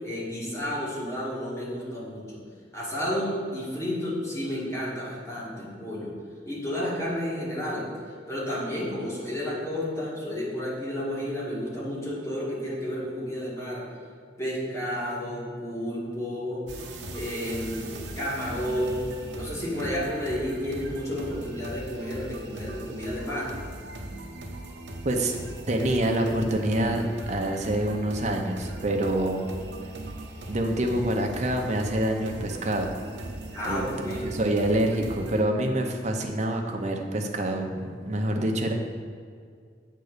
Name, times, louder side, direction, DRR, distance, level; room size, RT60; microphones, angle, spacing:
voice 1, 0.0-2.4 2.7-6.1 6.4-7.9 8.3-13.9 14.4-16.7 17.1-19.1 19.4-23.5 33.5-34.2, equal, 15° left, -6 dB, 1.9 m, -31 dB
sound 1, 16.7-35.4, right 1 dB, 80° right, 1.0 m, -39 dB
voice 2, 25.0-25.4 25.7-29.5 29.8-29.9 30.5-32.9 33.7-38.7, right 1 dB, 40° right, 3 dB, 0.8 m, -26 dB
8.0 x 3.7 x 6.6 m, 2.1 s
head